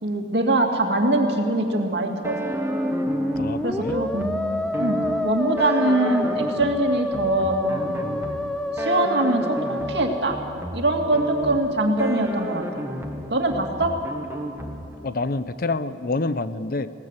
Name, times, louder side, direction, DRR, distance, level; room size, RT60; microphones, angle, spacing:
voice 1, 0.0-2.4 3.6-4.3 4.8-8.0 8.8-10.4 10.7-12.8 13.3-13.9, right 1 dB, 65° right, 3 dB, 2.4 m, -23 dB
sound 1, 2.2-15.1, right 1 dB, 15° right, 1.5 m, -33 dB
Musical instrument, 2.4-11.1, left 1 dB, 5° left, 0.6 m, -28 dB
voice 2, 3.4-4.0 15.0-16.9, left 3 dB, 55° left, 13 dB, 0.8 m, -27 dB
20.5 x 18.5 x 8.3 m, 2.6 s
head